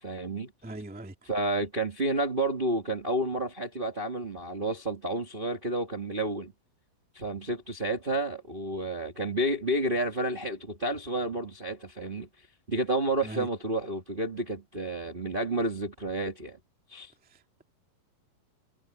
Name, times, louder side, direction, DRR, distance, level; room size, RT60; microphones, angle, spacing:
voice 1, 0.0-0.5 1.3-6.5 7.1-12.3 12.7-16.6 16.9-17.1, right 1 dB, 35° right, 0.8 m, -30 dB
voice 2, 0.6-1.1 13.2-13.5 17.3-17.6, right 1 dB, 10° right, 0.5 m, -40 dB
omnidirectional pair, 4.2 m